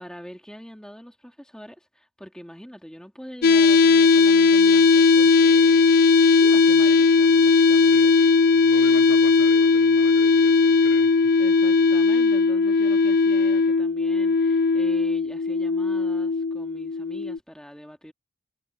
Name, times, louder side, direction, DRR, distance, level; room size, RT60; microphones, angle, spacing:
voice 1, 0.0-6.0 6.4-8.1 8.5-8.7 11.4-18.1, equal, 5° left, 2.1 m, -43 dB
sound 1, 3.4-17.4, left 4 dB, 45° left, 0.4 m, -18 dB
voice 2, 7.9-11.2, left 3 dB, 70° left, 4.1 m, -41 dB
head